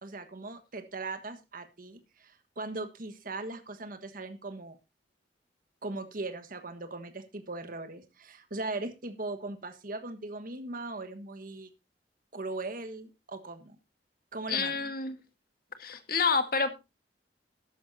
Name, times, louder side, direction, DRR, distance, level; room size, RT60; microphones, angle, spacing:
voice 1, 0.0-4.8 5.8-11.7 12.3-13.8 14.3-14.8, right 2 dB, 50° right, 10 dB, 1.5 m, -39 dB
voice 2, 14.5-15.1 15.8-16.7, left 5 dB, 55° left, 8 dB, 1.7 m, -28 dB
13.5 x 12.0 x 2.7 m, 0.24 s
head